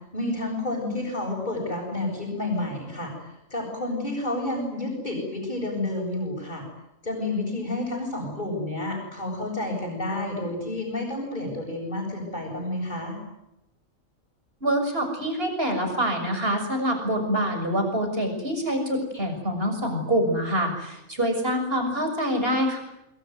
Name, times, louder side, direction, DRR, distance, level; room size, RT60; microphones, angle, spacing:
voice 1, 0.1-3.1 3.5-6.6 7.0-13.1, left 2 dB, 35° left, -4 dB, 8.1 m, -30 dB
voice 2, 14.6-22.8, equal, 45° right, 5 dB, 6.9 m, -25 dB
25.5 x 24.0 x 9.6 m, 0.87 s
omnidirectional pair, 1.4 m